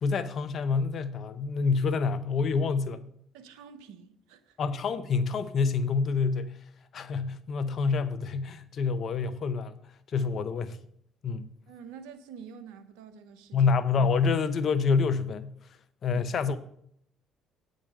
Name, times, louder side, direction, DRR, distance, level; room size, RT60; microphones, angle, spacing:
voice 1, 0.0-3.1 4.6-6.5 6.9-9.7 10.1-10.8 11.2-11.5 13.5-15.5 16.0-16.6, left 5 dB, 55° left, 0.7 m, -27 dB
voice 2, 3.3-4.6 11.7-13.7 16.1-16.3, right 7 dB, 80° right, 0.8 m, -47 dB
8.7 x 5.1 x 6.4 m
hypercardioid pair, 60°, 0 cm